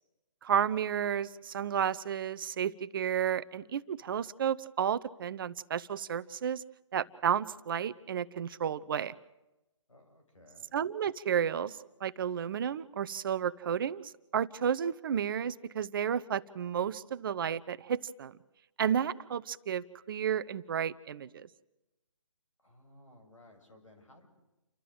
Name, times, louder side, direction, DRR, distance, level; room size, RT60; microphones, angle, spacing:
voice 1, 0.4-6.6 6.9-9.1 10.7-18.3 18.8-21.5, right 8 dB, 45° right, 15 dB, 0.7 m, -32 dB
voice 2, 9.9-10.7 22.6-24.3, left 1 dB, 80° left, 4 dB, 6.5 m, -58 dB
29.5 x 13.0 x 7.7 m, 0.98 s
figure-of-eight pair, 145°, 16 cm